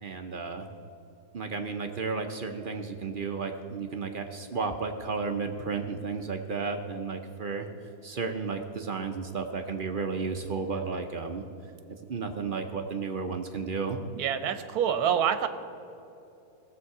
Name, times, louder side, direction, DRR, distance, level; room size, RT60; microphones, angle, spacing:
voice 1, 0.0-0.7 1.3-7.7 8.0-11.4 12.1-14.0, right 4 dB, 50° right, 5 dB, 0.6 m, -33 dB
voice 2, 14.1-15.5, right 9 dB, 75° right, 10 dB, 1.2 m, -26 dB
17.5 x 7.3 x 4.8 m, 2.9 s
omnidirectional pair, 1.6 m